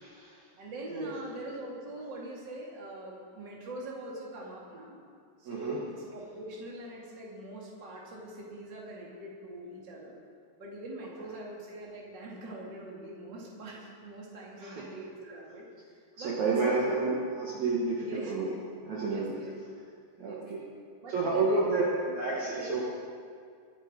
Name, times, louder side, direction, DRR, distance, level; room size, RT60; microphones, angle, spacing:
voice 1, 0.0-0.3 0.9-1.1 5.5-5.8 11.2-11.3 14.6-14.8 16.2-18.5 18.8-19.4 20.2-20.6 21.1-22.9, right 3 dB, 55° right, -5 dB, 2.7 m, -30 dB
voice 2, 0.6-5.0 5.4-10.1 10.6-15.6 16.2-16.9 18.0-18.5 19.1-19.5 20.2-20.5 21.0-22.8, right 1 dB, 30° right, -4 dB, 3.0 m, -43 dB
24.0 x 9.0 x 5.2 m, 2.2 s
omnidirectional pair, 4.3 m